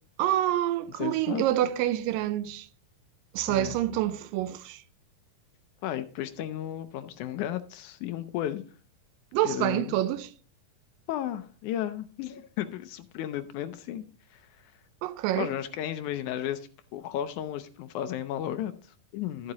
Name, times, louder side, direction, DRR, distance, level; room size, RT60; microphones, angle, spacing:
voice 1, 0.2-2.7 3.3-4.8 9.3-10.3 15.0-15.5, right 13 dB, 85° right, 2.3 m, -27 dB
voice 2, 1.0-1.4 3.5-3.8 5.8-8.6 9.4-10.0 11.1-14.0 14.3-14.7 15.3-19.5, left 11 dB, 80° left, 1.8 m, -34 dB
13.5 x 7.8 x 2.8 m
omnidirectional pair, 3.9 m